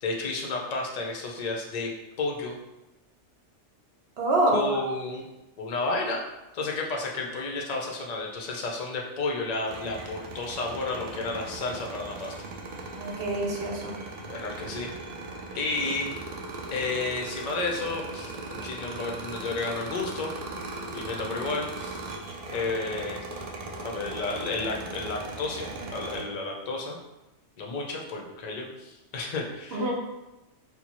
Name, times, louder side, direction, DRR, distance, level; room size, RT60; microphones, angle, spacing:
voice 1, 0.0-1.9 2.2-2.6 4.5-5.2 5.6-6.2 6.5-12.3 14.3-14.9 15.5-16.2 16.7-20.3 20.9-22.0 22.5-23.2 23.8-27.0 27.6-29.9, left 3 dB, 50° left, 0 dB, 0.5 m, -32 dB
voice 2, 4.2-4.6 12.9-14.0 29.7-29.9, right 1 dB, 60° right, -1 dB, 0.9 m, -26 dB
sound 1, 9.7-26.2, right 2 dB, 75° right, 0.3 m, -38 dB
4.2 x 2.1 x 2.9 m, 0.99 s
omnidirectional pair, 1.2 m